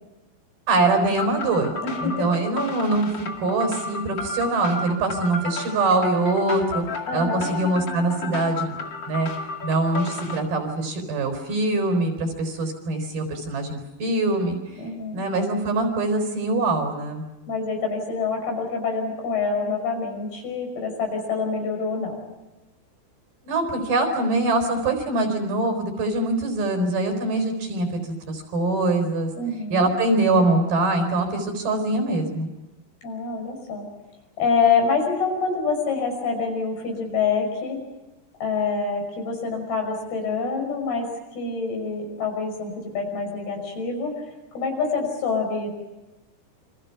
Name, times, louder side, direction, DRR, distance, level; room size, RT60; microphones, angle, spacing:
voice 1, 0.7-1.7 2.0-3.1 3.4-6.8 7.1-8.8 9.1-9.3 9.6-14.6 15.1-17.2 23.5-29.3 29.7-32.5, right 2 dB, 55° right, 5 dB, 6.0 m, -23 dB
sound 1, 1.2-10.4, left 4 dB, 40° left, 1.8 m, -32 dB
voice 2, 1.8-2.3 7.1-7.5 14.8-15.2 17.5-22.2 29.4-29.9 33.0-33.8 34.4-37.8 38.4-41.1 41.4-44.2 44.5-45.7, left 5 dB, 55° left, 3 dB, 7.4 m, -26 dB
29.0 x 26.0 x 5.9 m, 1.0 s
omnidirectional pair, 5.2 m